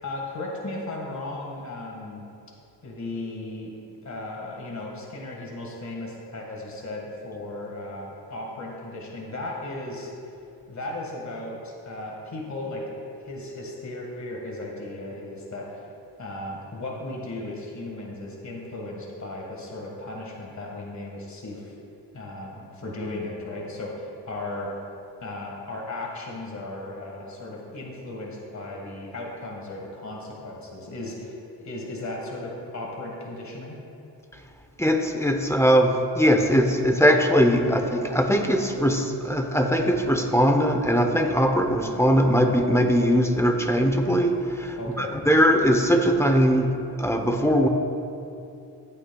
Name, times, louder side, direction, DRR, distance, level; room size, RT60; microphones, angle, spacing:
voice 1, 0.0-2.2 2.8-3.7 4.0-10.1 10.7-12.9 13.2-15.9 16.2-21.7 22.1-24.7 25.2-33.8 44.8-45.1, left 2 dB, 40° left, -2 dB, 1.8 m, -36 dB
voice 2, 34.8-47.7, equal, 5° left, 4 dB, 0.8 m, -21 dB
14.5 x 8.6 x 2.3 m, 2.7 s
cardioid pair, 75°, 43 cm